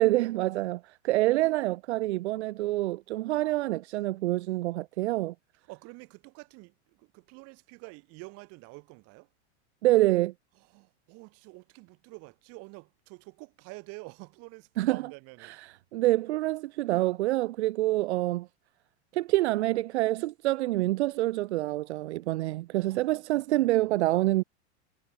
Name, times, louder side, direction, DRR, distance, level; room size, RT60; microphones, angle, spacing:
voice 1, 0.0-5.3 9.8-10.3 14.8-15.0 15.4-18.5 19.1-24.4, right 17 dB, 70° right, 1.3 m, -27 dB
voice 2, 5.7-9.3 10.6-15.6 22.7-24.2, right 28 dB, 45° right, 4.9 m, -48 dB
supercardioid pair, 150°, 35 cm